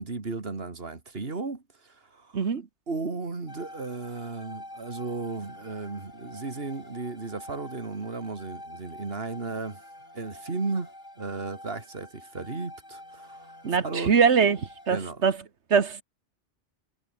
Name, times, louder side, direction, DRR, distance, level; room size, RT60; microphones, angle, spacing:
voice 1, 0.0-2.5 2.9-9.8 10.1-10.9 11.2-14.1 14.9-15.2, right 3 dB, 60° right, 2.7 m, -35 dB
voice 2, 2.3-2.7 13.6-15.4 15.7-16.0, right 6 dB, 75° right, 1.8 m, -23 dB
sound 1, 3.5-15.0, left 1 dB, 45° left, 7.4 m, -47 dB
omnidirectional pair, 1.2 m